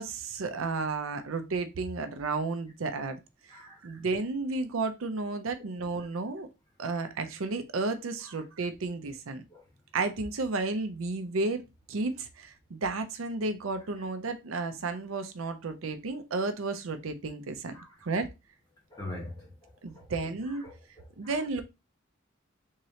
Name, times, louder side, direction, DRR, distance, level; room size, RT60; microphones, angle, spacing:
voice 1, 0.0-3.2 3.8-6.5 6.8-9.4 9.9-17.7 18.0-18.3 19.8-20.6 21.2-21.6, right 3 dB, 80° right, 0.6 m, -32 dB
voice 2, 3.5-3.8 6.9-7.0 9.5-9.6 17.7-17.9 18.9-20.1 20.6-20.7 21.2-21.3, left 1 dB, 20° left, 1.5 m, -43 dB
3.6 x 3.1 x 2.8 m
head